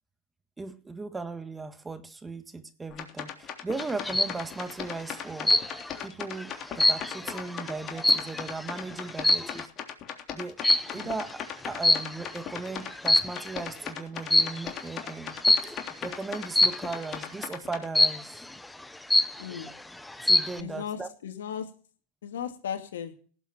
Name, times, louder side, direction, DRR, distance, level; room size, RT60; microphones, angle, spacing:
voice 1, 0.6-5.7 6.0-9.7 10.3-10.6 10.9-18.5 20.2-21.1, right 3 dB, 15° right, 1.7 m, -37 dB
sound 1, 2.9-17.9, left 9 dB, 40° left, 3.3 m, -38 dB
sound 2, 3.8-4.4 5.4-6.0 6.4-8.6 9.2-9.6 10.6-11.0 11.8-12.4 12.9-13.6 14.3-14.7 15.4-15.8 16.5-17.0 17.9-18.4 18.8-18.9 19.1-19.7 20.1-20.6, left 1 dB, 5° left, 1.0 m, -23 dB
voice 2, 19.4-19.7 20.6-21.7 22.2-23.1, left 8 dB, 85° left, 2.5 m, -36 dB
18.0 x 8.1 x 4.4 m
hypercardioid pair, 105°, 0 cm